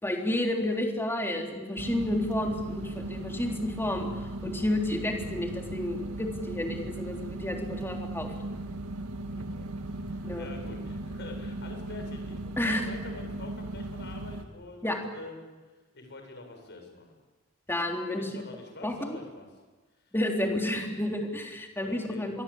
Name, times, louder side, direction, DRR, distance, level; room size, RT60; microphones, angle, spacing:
voice 1, 0.0-4.1 4.4-8.3 10.2-10.5 12.6-12.9 14.8-15.0 17.7-18.4 18.8-19.2 20.1-22.4, left 1 dB, 10° left, 1 dB, 3.6 m, -31 dB
sound 1, 1.8-14.4, right 1 dB, 75° right, 2.0 m, -37 dB
voice 2, 9.3-9.7 9.9-15.5 15.9-17.1 18.1-19.5 20.0-20.2 21.8-22.3, left 3 dB, 50° left, 4 dB, 6.8 m, -45 dB
26.5 x 22.5 x 8.6 m, 1.3 s
head